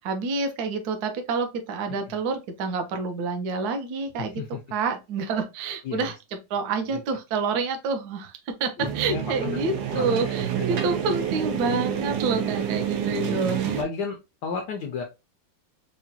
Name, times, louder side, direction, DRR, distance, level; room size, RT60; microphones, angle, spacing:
voice 1, 0.0-4.3 4.7-6.1 6.5-13.6, right 4 dB, 65° right, 1.0 m, -28 dB
voice 2, 4.2-4.6 5.8-6.1 6.9-7.0 8.8-9.6 9.9-10.7 13.2-13.4 13.8-14.2 14.4-15.0, left 5 dB, 75° left, 0.9 m, -33 dB
sound 1, 8.8-13.8, right 9 dB, 85° right, 1.6 m, -28 dB
4.8 x 2.2 x 2.7 m
omnidirectional pair, 2.4 m